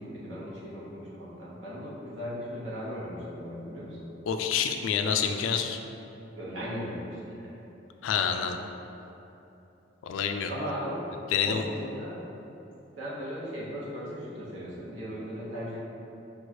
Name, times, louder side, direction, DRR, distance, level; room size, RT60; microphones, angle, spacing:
voice 1, 0.0-4.1 6.4-7.6 10.5-11.0 11.4-12.2 13.0-15.8, equal, 70° right, -8 dB, 1.2 m, -37 dB
voice 2, 4.3-5.8 8.0-8.6 10.0-10.5 11.3-11.6, left 7 dB, 75° left, 6 dB, 0.3 m, -27 dB
6.2 x 2.4 x 3.0 m, 3.0 s
head